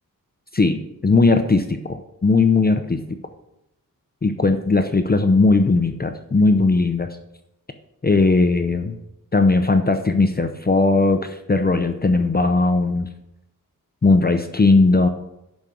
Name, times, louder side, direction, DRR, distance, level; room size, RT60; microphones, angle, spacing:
voice 1, 0.5-3.0 4.2-7.1 8.0-9.0 9.3-13.1 14.0-15.1, left 3 dB, 25° left, 7 dB, 0.7 m, -18 dB
11.5 x 5.2 x 6.3 m, 0.87 s
wide cardioid pair, 140°, 36 cm